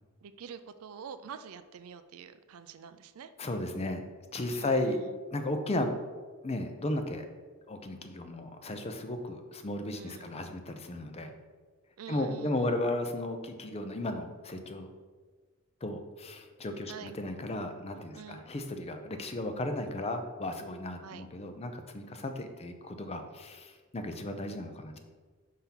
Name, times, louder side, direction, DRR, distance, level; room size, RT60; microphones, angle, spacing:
voice 1, 0.2-3.3 4.5-5.1 9.9-10.3 12.0-12.8 16.9-17.1 18.1-18.4 21.0-21.2, right 7 dB, 70° right, 11 dB, 0.4 m, -46 dB
voice 2, 3.4-4.0 4.3-5.0 5.3-5.9 6.4-7.3 7.7-11.3 12.1-14.9 15.8-25.0, left 1 dB, 25° left, 7 dB, 0.5 m, -35 dB
5.6 x 3.6 x 5.7 m, 1.5 s
head